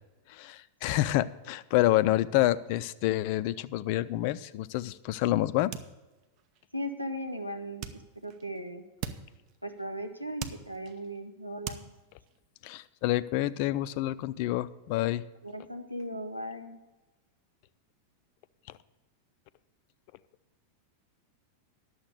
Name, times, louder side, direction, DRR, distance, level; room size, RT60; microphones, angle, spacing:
voice 1, 0.3-5.7 12.6-15.2, left 15 dB, 45° left, 16 dB, 0.4 m, -28 dB
Punch Pack, 4.2-5.2 5.5-6.7 7.8-8.7 9.0-9.9 10.2-11.2 11.7-12.4, right 8 dB, 40° right, 0.8 m, -42 dB
voice 2, 6.7-8.8 9.6-11.9 15.4-16.8, equal, 90° right, 6 dB, 0.8 m, -37 dB
11.0 x 7.2 x 6.6 m, 1.1 s
figure-of-eight pair, 90°, 0 cm